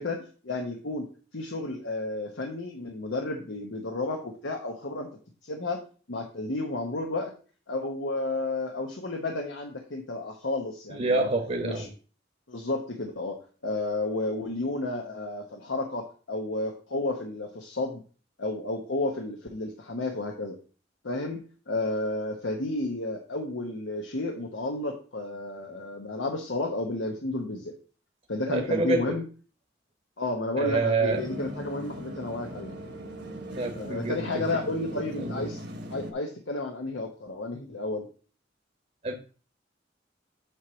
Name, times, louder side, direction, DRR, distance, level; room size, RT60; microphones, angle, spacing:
voice 1, 0.0-5.1 5.4-5.8 6.1-7.3 7.7-11.3 11.6-11.9 12.5-13.4 13.6-18.0 18.4-20.6 21.0-21.4 21.7-27.8 28.3-29.2 30.2-32.7 33.7-35.6 35.9-38.1, left 2 dB, 85° left, 1.1 m, -32 dB
voice 2, 10.9-11.9 28.5-29.2 30.6-31.3 33.6-34.4 35.2-35.5 39.0-39.1, right 3 dB, 40° right, 1.0 m, -27 dB
sound 1, 31.1-36.1, equal, 60° right, 1.2 m, -39 dB
8.0 x 3.0 x 6.2 m
head